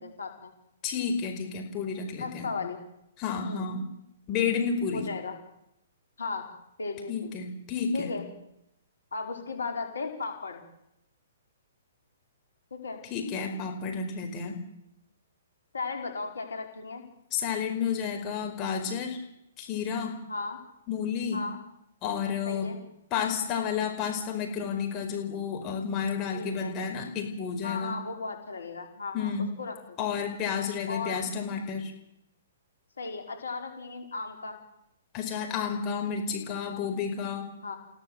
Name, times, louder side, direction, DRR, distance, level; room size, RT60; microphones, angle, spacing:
voice 1, 0.0-0.5 2.2-2.8 3.4-3.6 4.9-5.3 6.2-6.5 6.8-7.4 7.9-8.2 9.1-10.6 12.7-13.0 15.7-17.1 20.3-20.6 21.3-21.6 22.4-22.8 26.3-26.7 27.6-29.3 29.6-30.0 30.9-31.3 33.0-34.6 37.6-37.8, left 4 dB, 80° left, 4 dB, 5.0 m, -36 dB
voice 2, 0.8-2.5 3.2-3.8 4.3-5.1 7.1-8.1 13.1-14.6 17.3-19.2 19.6-20.1 20.9-21.4 22.0-22.7 23.1-28.0 29.1-29.5 30.0-31.9 35.1-37.5, left 6 dB, 30° left, 3 dB, 5.1 m, -31 dB
29.0 x 17.0 x 8.0 m, 0.85 s
hypercardioid pair, 125°, 0 cm